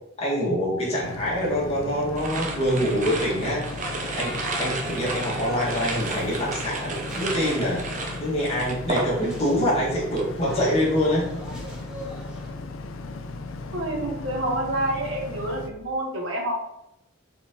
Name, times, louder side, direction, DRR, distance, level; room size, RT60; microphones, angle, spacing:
voice 1, 0.2-3.6 4.1-7.8 8.2-11.3, equal, 30° left, -6 dB, 1.6 m, -25 dB
Boat Water vehicle, 1.0-15.7, left 3 dB, 90° left, 0.5 m, -37 dB
sound 1, 2.2-9.6 9.9-10.3, right 3 dB, 40° right, 0.6 m, -32 dB
sound 2, 3.4-12.5, equal, 5° right, 1.2 m, -41 dB
voice 2, 13.7-16.5, right 1 dB, 70° right, 0 dB, 1.2 m, -28 dB
4.3 x 4.1 x 2.8 m, 0.84 s
head